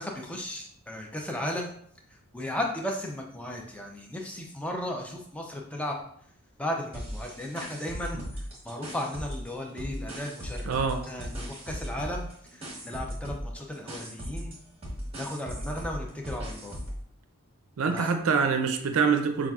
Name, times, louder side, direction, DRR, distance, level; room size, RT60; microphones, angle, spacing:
voice 1, 0.0-1.7 2.3-6.0 6.6-14.5 15.1-16.8 17.9-18.1, left 1 dB, 5° left, 1 dB, 0.4 m, -35 dB
sound 1, 6.9-9.5 9.8-17.0, equal, 25° right, 0.9 m, -37 dB
voice 2, 10.7-11.0 17.8-19.5, right 5 dB, 75° right, 6 dB, 0.4 m, -25 dB
5.4 x 2.4 x 2.3 m, 0.65 s
head